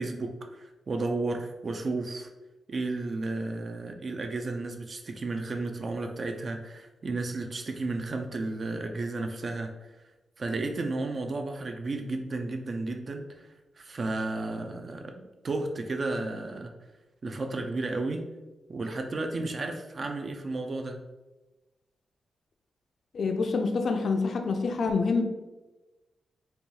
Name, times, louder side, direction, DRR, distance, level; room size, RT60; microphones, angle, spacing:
voice 1, 0.0-2.3 2.7-9.7 10.4-13.5 13.8-16.7 17.2-18.2 18.7-21.0, right 2 dB, 35° right, 4 dB, 0.3 m, -33 dB
voice 2, 23.1-25.2, left 4 dB, 50° left, 5 dB, 0.4 m, -26 dB
4.6 x 2.3 x 2.7 m, 1.1 s
wide cardioid pair, 175°, 0 cm